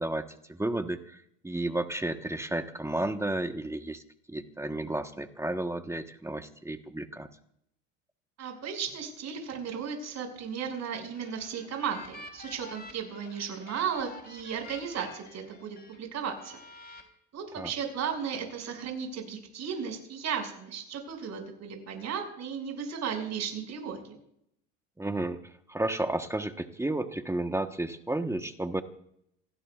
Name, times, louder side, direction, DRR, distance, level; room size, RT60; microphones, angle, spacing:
voice 1, 0.0-4.0 4.3-7.3 17.6-17.7 25.0-25.4 25.7-28.8, right 1 dB, 5° right, 7 dB, 1.2 m, -32 dB
voice 2, 8.4-16.6 17.3-24.2, right 7 dB, 45° right, 2 dB, 6.3 m, -35 dB
sound 1, 10.9-16.0 16.4-17.0, left 3 dB, 25° left, 3.7 m, -49 dB
27.5 x 17.5 x 2.4 m, 0.73 s
supercardioid pair, 95°, 38 cm